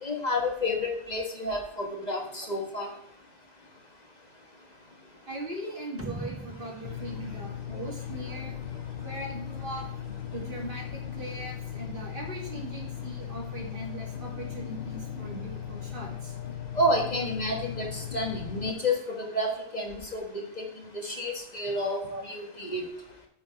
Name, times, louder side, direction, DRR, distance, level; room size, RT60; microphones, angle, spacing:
voice 1, 0.0-2.9 16.7-20.6 20.9-22.8, left 1 dB, 45° left, 1 dB, 1.5 m, -30 dB
voice 2, 5.3-8.6 9.0-16.3 22.0-22.2, right 1 dB, 55° right, -3 dB, 2.8 m, -40 dB
sound 1, 6.0-8.5, right 1 dB, 15° right, 0.6 m, -41 dB
sound 2, 6.8-18.7, left 9 dB, 60° left, 0.7 m, -38 dB
8.1 x 6.5 x 4.8 m, 0.71 s
omnidirectional pair, 1.0 m